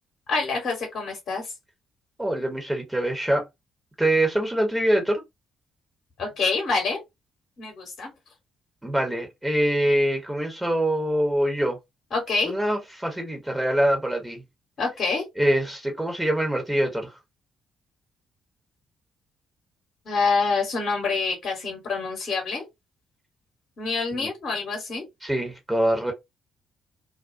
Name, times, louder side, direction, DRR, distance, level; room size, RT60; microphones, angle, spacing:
voice 1, 0.3-1.5 6.2-7.0 7.6-8.1 12.1-12.5 14.8-15.3 20.1-22.7 23.8-25.0, left 4 dB, 50° left, 1.0 m, -26 dB
voice 2, 2.2-3.5 4.0-5.2 8.8-11.8 12.4-14.4 15.4-17.2 24.1-24.3 25.2-26.1, right 1 dB, 10° right, 0.9 m, -24 dB
2.4 x 2.2 x 2.6 m
figure-of-eight pair, 45°, 0 cm